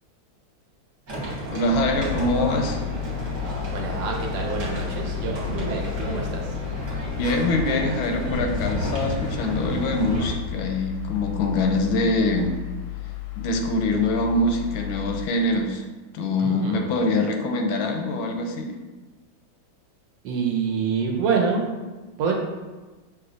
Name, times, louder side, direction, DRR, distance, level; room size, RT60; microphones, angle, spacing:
sound 1, 1.1-10.3, equal, 45° right, 1.2 m, -31 dB
voice 1, 1.5-2.8 7.1-12.6 13.4-15.8 16.1-18.8, left 2 dB, 90° left, 4 dB, 1.4 m, -24 dB
sound 2, 1.7-15.3, left 19 dB, 75° left, 1.1 m, -34 dB
voice 2, 3.7-6.5 16.4-16.9 20.2-21.7 22.2-22.3, right 5 dB, 75° right, 1 dB, 1.3 m, -26 dB
5.8 x 2.9 x 2.5 m, 1.2 s
omnidirectional pair, 2.2 m